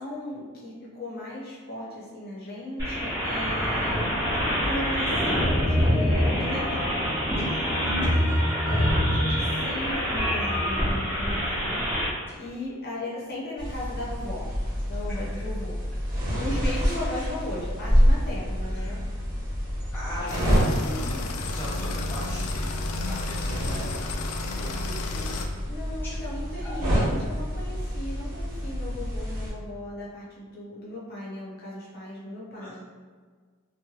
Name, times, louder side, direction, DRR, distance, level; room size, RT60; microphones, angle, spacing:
voice 1, 0.0-4.2 4.6-7.0 8.6-11.8 12.4-14.4 14.9-15.7 16.4-19.0 20.3-20.5 20.8-21.3 25.1-25.3 25.7-32.8, left 1 dB, 45° left, -6 dB, 0.8 m, -36 dB
sound 1, 2.8-12.1, equal, 15° right, 1.1 m, -25 dB
voice 2, 7.4-8.5 12.3-12.4 15.1-15.4 18.7-19.0 19.9-21.1 21.4-22.7 23.1-24.0 24.6-25.4 26.0-26.2 26.6-26.8 32.6-32.8, equal, 10° left, -9 dB, 0.5 m, -41 dB
sound 2, 13.6-29.5, equal, 40° right, 1.4 m, -28 dB
sound 3, 20.3-25.5, left 3 dB, 80° left, 0.3 m, -34 dB
3.0 x 2.2 x 2.9 m, 1.6 s
head